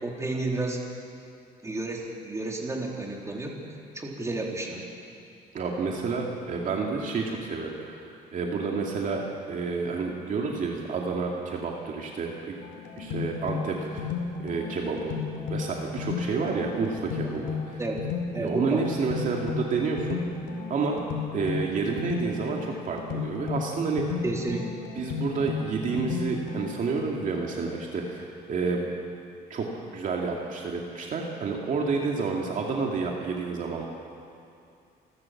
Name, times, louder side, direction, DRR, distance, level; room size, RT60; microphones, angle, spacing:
voice 1, 0.0-0.8 1.6-3.6 3.9-4.9 17.2-17.5 17.8-18.8 19.2-19.4 24.2-24.8, right 2 dB, 15° right, -1 dB, 3.5 m, -32 dB
voice 2, 5.5-9.2 9.5-12.6 13.0-14.1 14.4-15.2 15.5-17.6 18.3-20.2 20.7-21.0 21.3-24.2 25.0-28.9 29.5-29.7 29.9-33.9, right 4 dB, 50° right, -1 dB, 2.5 m, -29 dB
sound 1, 12.6-27.5, left 5 dB, 90° left, 2.6 m, -34 dB
28.5 x 12.5 x 7.4 m, 2.6 s
cardioid pair, 110°, 17 cm